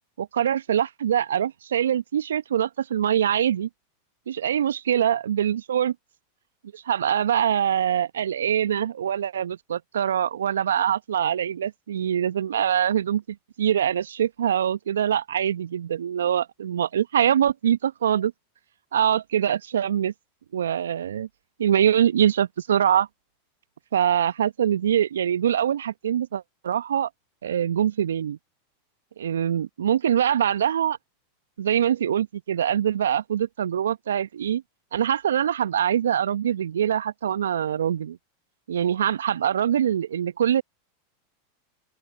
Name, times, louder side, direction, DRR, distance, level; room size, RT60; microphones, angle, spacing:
voice 1, 0.2-3.7 4.3-5.9 6.7-13.2 13.6-18.3 18.9-20.1 20.5-21.3 21.6-23.1 23.9-27.1 27.4-28.4 29.2-31.0 31.6-34.6 34.9-38.2 38.7-40.6, right 9 dB, 75° right, 1.1 m, -23 dB
open air
figure-of-eight pair, 90°, 0 cm